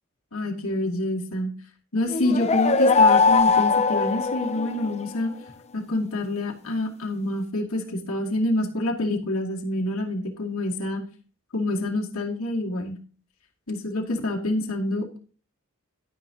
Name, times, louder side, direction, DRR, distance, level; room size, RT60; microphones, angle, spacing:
voice 1, 0.3-1.5 1.9-5.3 5.7-11.0 11.5-12.9 13.7-15.2, left 1 dB, 85° left, 0 dB, 2.4 m, -27 dB
sound 1, 2.1-5.0, left 4 dB, 30° left, 0.5 m, -20 dB
12.0 x 10.0 x 2.9 m, 0.39 s
head